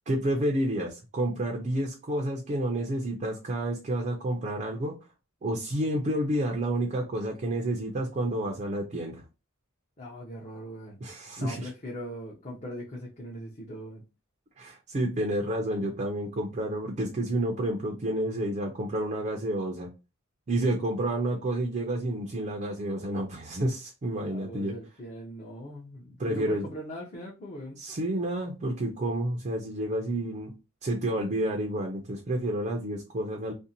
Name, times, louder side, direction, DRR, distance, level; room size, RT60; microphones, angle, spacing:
voice 1, 0.1-5.0 5.4-9.2 11.0-11.7 14.6-19.9 20.5-24.7 26.2-26.6 27.8-30.5 30.8-33.5, right 1 dB, 35° right, 0.4 m, -30 dB
voice 2, 10.0-11.0 11.4-14.0 24.2-27.8, equal, 35° left, 0.6 m, -40 dB
2.5 x 2.0 x 2.7 m
head